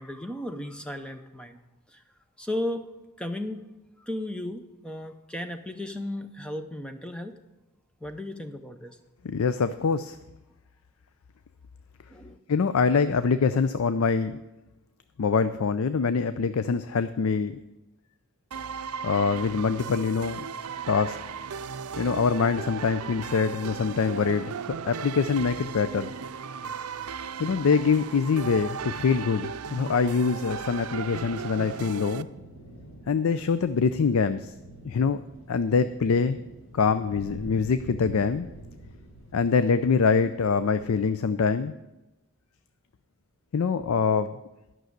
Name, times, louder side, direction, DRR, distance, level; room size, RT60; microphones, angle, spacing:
voice 1, 0.0-1.6 1.9-2.0 2.4-2.9 3.2-3.7 4.0-7.3 8.0-9.0 12.1-12.4, left 1 dB, 5° left, 7 dB, 0.6 m, -35 dB
voice 2, 9.2-10.2 12.5-14.4 15.2-17.6 19.0-20.5 20.9-21.2 22.0-24.5 24.9-26.1 27.4-32.3 33.1-34.5 34.8-35.2 35.5-36.4 36.7-38.5 39.3-41.7 43.5-44.4, left 5 dB, 75° left, 12 dB, 0.4 m, -24 dB
sound 1, 18.5-32.2, right 6 dB, 90° right, 0.5 m, -36 dB
sound 2, 30.8-41.3, right 1 dB, 60° left, 3.8 m, -47 dB
11.5 x 6.2 x 7.9 m, 0.99 s
head